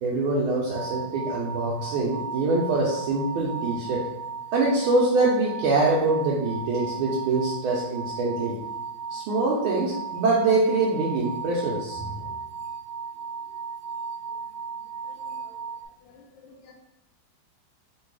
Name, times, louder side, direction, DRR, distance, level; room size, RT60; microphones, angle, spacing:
voice 1, 0.0-4.0 4.5-8.6 9.1-12.3, right 3 dB, 90° right, -4 dB, 1.6 m, -24 dB
sound 1, 0.7-15.8, right 6 dB, 65° right, 1.1 m, -36 dB
voice 2, 15.0-15.6 16.0-16.7, left 4 dB, 70° left, 1 dB, 1.5 m, -53 dB
3.8 x 2.6 x 4.6 m, 0.89 s
omnidirectional pair, 2.2 m